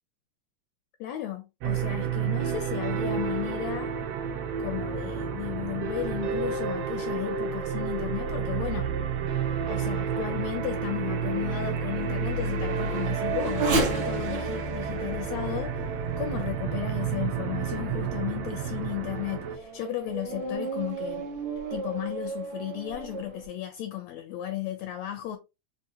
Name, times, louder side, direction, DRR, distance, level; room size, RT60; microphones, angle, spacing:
voice 1, 1.0-3.9 4.6-8.9 9.7-15.9 16.2-21.3 21.7-25.4, left 13 dB, 80° left, 1.6 m, -34 dB
sound 1, 1.6-19.6, right 6 dB, 80° right, 1.3 m, -30 dB
Race car auto racing / Accelerating revving vroom, 9.6-17.4 18.0-18.1 18.7-23.5, right 2 dB, 55° right, 1.6 m, -35 dB
4.8 x 2.8 x 2.8 m
omnidirectional pair, 3.4 m